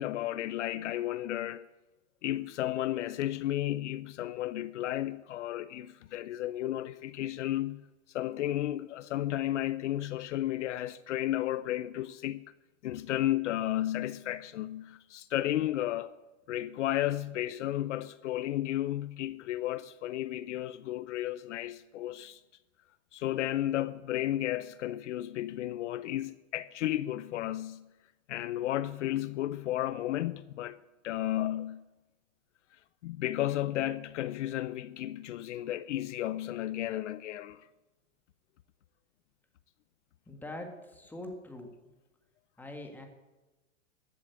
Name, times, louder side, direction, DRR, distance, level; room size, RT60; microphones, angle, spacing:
voice 1, 0.0-1.7 2.2-7.9 8.1-12.5 12.8-16.2 16.5-22.4 23.1-27.8 28.3-30.8 31.0-31.8 33.0-37.6, left 13 dB, 65° left, 0.6 m, -33 dB
voice 2, 40.3-41.7 42.6-43.1, left 1 dB, 5° left, 1.7 m, -43 dB
14.0 x 8.6 x 8.1 m
hypercardioid pair, 145°, 39 cm